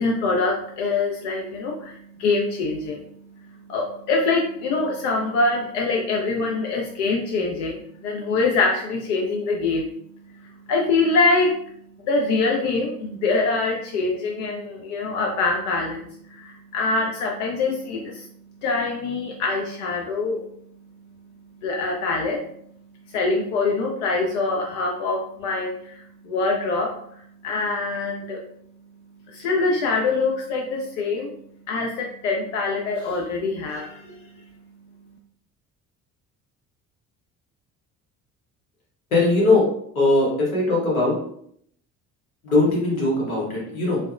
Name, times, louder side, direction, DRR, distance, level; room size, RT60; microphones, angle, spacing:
voice 1, 0.0-11.6 12.0-18.3 18.6-20.5 21.6-22.4 23.1-28.4 29.3-31.3 31.7-34.5, left 3 dB, 60° left, 0 dB, 0.5 m, -24 dB
voice 2, 39.1-39.7 39.9-41.1 42.4-44.0, left 2 dB, 80° left, -5 dB, 0.9 m, -20 dB
2.6 x 2.1 x 2.3 m, 0.67 s
figure-of-eight pair, 50°, 41 cm